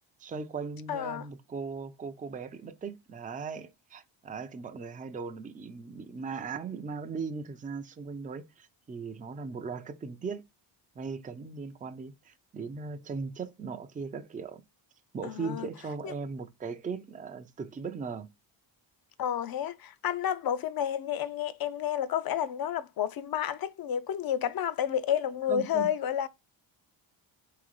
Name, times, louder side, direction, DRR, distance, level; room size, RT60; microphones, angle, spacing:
voice 1, 0.2-10.4 11.0-14.6 15.1-18.3 25.5-25.9, right 5 dB, 20° right, 0.4 m, -38 dB
voice 2, 0.9-1.2 15.2-15.7 16.0-16.1 19.2-26.3, left 10 dB, 50° left, 0.6 m, -30 dB
3.8 x 3.3 x 3.2 m
cardioid pair, 95°, 48 cm